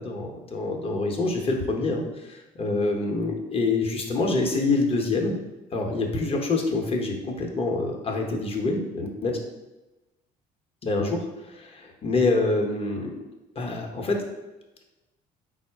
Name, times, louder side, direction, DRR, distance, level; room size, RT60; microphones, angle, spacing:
voice 1, 0.0-5.4 5.7-9.3 10.8-13.3 13.6-14.2, left 3 dB, 35° left, 2 dB, 0.8 m, -26 dB
4.5 x 2.1 x 4.4 m, 1.0 s
cardioid pair, 110°, 17 cm